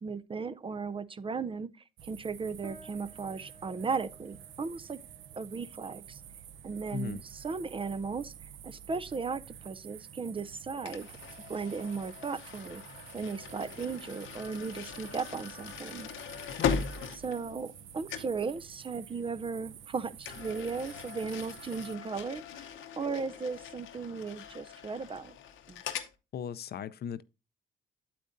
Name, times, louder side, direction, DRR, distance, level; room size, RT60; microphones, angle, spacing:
voice 1, 0.0-1.7 2.0-5.0 5.4-6.2 6.6-11.1 11.5-12.8 13.1-16.1 17.2-25.4 25.7-25.8, right 5 dB, 25° right, 0.5 m, -36 dB
sound 1, 2.0-22.0, right 9 dB, 75° right, 0.7 m, -50 dB
sound 2, 2.6-12.3, right 2 dB, 45° right, 3.0 m, -59 dB
sound 3, 10.9-17.8 18.1-18.4 20.2-26.1, left 7 dB, 80° left, 0.9 m, -39 dB
voice 2, 26.3-27.2, left 8 dB, 55° left, 0.5 m, -37 dB
8.5 x 8.3 x 2.6 m
cardioid pair, 90°, 20 cm